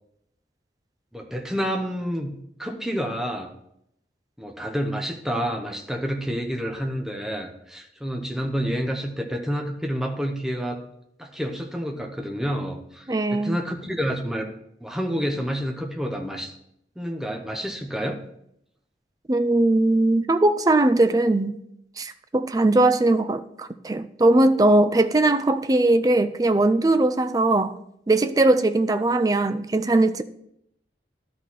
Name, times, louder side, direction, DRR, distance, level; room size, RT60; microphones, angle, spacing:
voice 1, 1.1-2.3 2.6-3.5 4.4-10.9 11.2-14.5 14.8-16.5 17.0-18.2, equal, 5° right, 0.8 m, -29 dB
voice 2, 13.1-13.6 19.3-21.6 22.0-27.8 28.1-30.2, right 2 dB, 20° right, 0.3 m, -20 dB
12.0 x 4.2 x 4.5 m
head